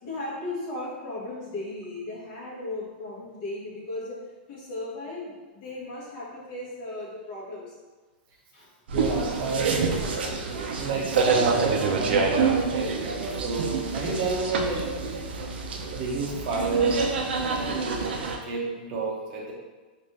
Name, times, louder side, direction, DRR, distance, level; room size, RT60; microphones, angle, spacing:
voice 1, 0.0-4.2 4.5-7.7 8.5-8.7 17.7-17.9, left 2 dB, 40° left, -5 dB, 1.2 m, -36 dB
voice 2, 8.9-9.8 10.7-14.8 15.3-15.4 16.0-17.0 17.5-18.0 18.4-19.5, right 4 dB, 40° right, -2 dB, 0.7 m, -29 dB
sound 1, 8.9-18.4, right 4 dB, 80° right, 0.5 m, -27 dB
3.3 x 2.5 x 4.1 m, 1.3 s
supercardioid pair, 160°, 5 cm